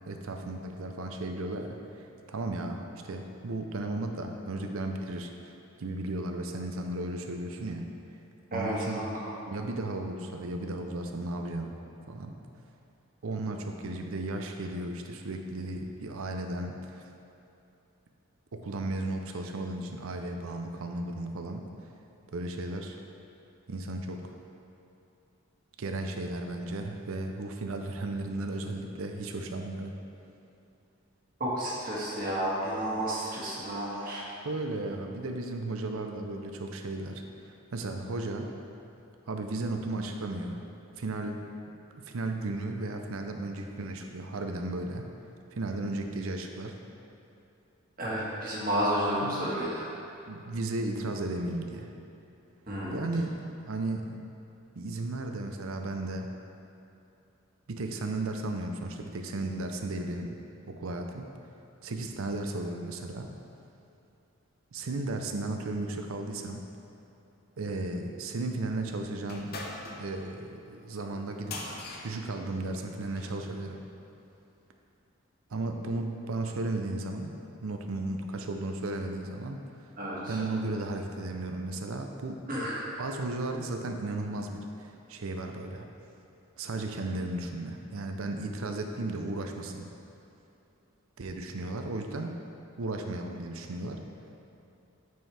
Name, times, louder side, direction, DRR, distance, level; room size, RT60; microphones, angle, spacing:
voice 1, 0.1-7.9 8.5-9.1 9.5-11.8 12.1-12.4 13.2-17.0 18.5-21.7 22.3-23.0 23.7-24.3 25.8-29.9 34.4-38.5 39.3-40.6 41.0-41.4 42.0-45.0 45.5-46.8 49.2-49.4 50.3-51.9 52.9-54.2 54.8-56.3 57.7-60.4 60.7-61.3 61.8-63.3 64.7-66.7 67.6-69.6 70.0-71.6 72.0-73.8 75.5-77.4 77.6-79.6 80.3-82.4 83.0-85.9 86.6-89.9 91.2-92.4 92.8-94.0, right 2 dB, 75° right, 4 dB, 0.6 m, -35 dB
voice 2, 8.5-9.4 31.4-34.2 48.0-49.8 52.7-53.0 80.0-80.4 82.5-82.9, equal, 40° right, -6 dB, 1.4 m, -31 dB
sound 1, 69.2-73.4, left 2 dB, 45° left, 0.7 m, -43 dB
9.2 x 4.5 x 3.4 m, 2.8 s
head